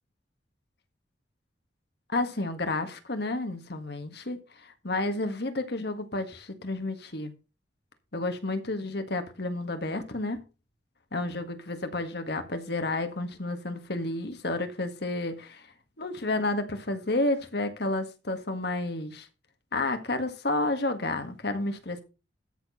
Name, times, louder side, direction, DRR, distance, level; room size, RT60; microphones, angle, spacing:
voice 1, 2.1-7.3 8.1-10.4 11.1-15.6 16.0-19.3 19.7-22.0, left 2 dB, 60° left, 1.8 m, -31 dB
13.5 x 4.6 x 5.7 m
head